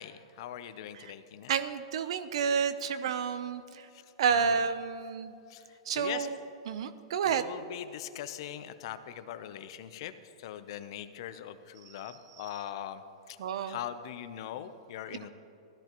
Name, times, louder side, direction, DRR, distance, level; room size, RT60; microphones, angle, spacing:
voice 1, 0.0-1.5 3.9-4.0 4.4-4.5 5.5-5.6 5.9-6.3 7.2-10.1 10.4-13.0 13.3-13.4 13.7-15.3, left 11 dB, 55° left, 11 dB, 0.7 m, -41 dB
voice 2, 1.5-3.9 4.2-5.3 5.9-6.4 6.7-7.5 11.9-12.0 13.4-13.8 15.1-15.3, right 6 dB, 70° right, 13 dB, 0.7 m, -30 dB
16.0 x 13.5 x 3.0 m, 2.7 s
hypercardioid pair, 145°, 3 cm